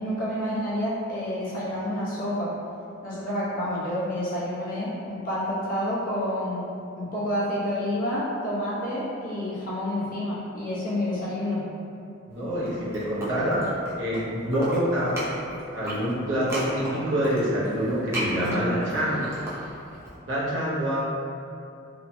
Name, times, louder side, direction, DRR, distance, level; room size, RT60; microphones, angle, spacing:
voice 1, 0.0-2.5 3.0-6.6 7.0-11.6, left 1 dB, 45° left, -9 dB, 0.7 m, -29 dB
voice 2, 12.3-13.7 14.0-15.2 15.7-19.4 20.3-21.0, equal, 65° right, -8 dB, 0.8 m, -26 dB
sound 1, 12.5-14.2 14.5-20.1, right 1 dB, 15° right, 0.5 m, -35 dB
3.0 x 2.1 x 2.6 m, 2.6 s
head